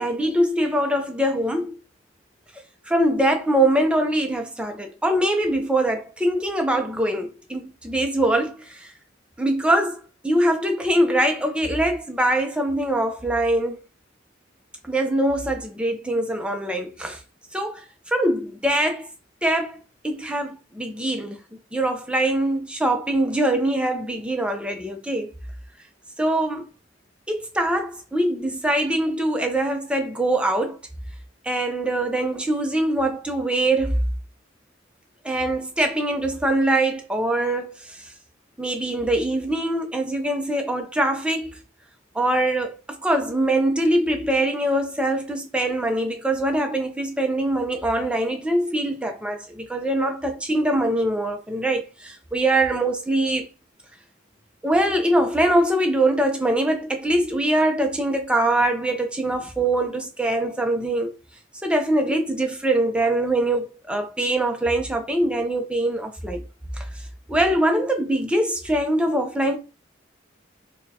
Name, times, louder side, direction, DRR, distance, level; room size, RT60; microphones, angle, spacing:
voice 1, 0.0-1.8 2.9-8.9 9.4-13.8 14.8-17.2 17.5-19.1 19.4-19.8 20.0-21.4 21.7-25.3 26.2-26.7 27.3-30.8 31.4-34.0 35.2-38.0 38.6-41.6 42.1-42.8 43.0-53.5 54.6-61.1 61.6-66.4 66.8-66.9 67.3-69.6, right 1 dB, 5° right, 0.5 m, -23 dB
4.2 x 2.2 x 2.7 m
head